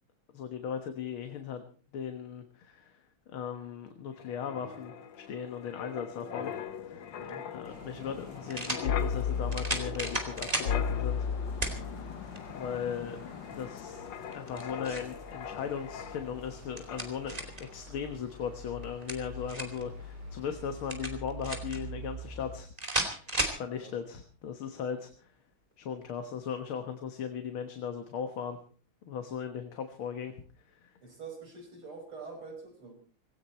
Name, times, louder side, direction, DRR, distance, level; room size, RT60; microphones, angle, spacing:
voice 1, 0.3-1.6 1.9-3.0 3.3-6.5 6.8-7.1 7.5-11.3 12.5-13.2 13.6-23.2 23.6-25.3 25.8-28.6 29.1-30.3 30.7-30.9, left 7 dB, 80° left, 7 dB, 2.2 m, -38 dB
Wind, 4.2-16.6 16.9-17.1, left 7 dB, 65° left, 1.8 m, -37 dB
sound 1, 7.2-7.3 8.5-8.9 9.5-10.7 11.6-11.8 12.4-12.5 14.3-15.1 16.5-17.7 18.8-19.8 20.9-21.8 22.8-23.6, right 1 dB, 20° right, 2.7 m, -34 dB
voice 2, 7.2-7.5 23.7-24.0 31.0-32.9, right 4 dB, 85° right, 2 dB, 6.7 m, -45 dB
sound 2, 7.6-22.6, right 1 dB, 50° right, 4.7 m, -47 dB
18.5 x 17.5 x 4.4 m, 0.41 s
omnidirectional pair, 2.3 m